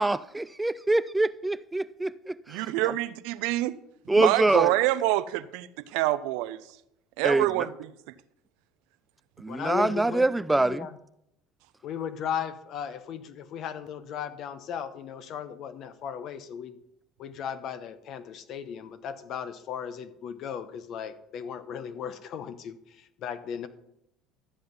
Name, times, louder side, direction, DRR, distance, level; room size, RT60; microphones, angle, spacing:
voice 1, 0.0-2.6 4.1-4.7 7.2-7.5 9.4-10.9, right 2 dB, 10° right, 0.3 m, -25 dB
voice 2, 2.5-3.8 4.1-6.6 7.2-7.9, right 16 dB, 75° right, 0.6 m, -26 dB
voice 3, 9.5-10.3 10.5-11.0 11.8-16.8 17.2-23.7, left 8 dB, 55° left, 1.0 m, -36 dB
13.0 x 7.8 x 5.4 m
supercardioid pair, 100°, 0 cm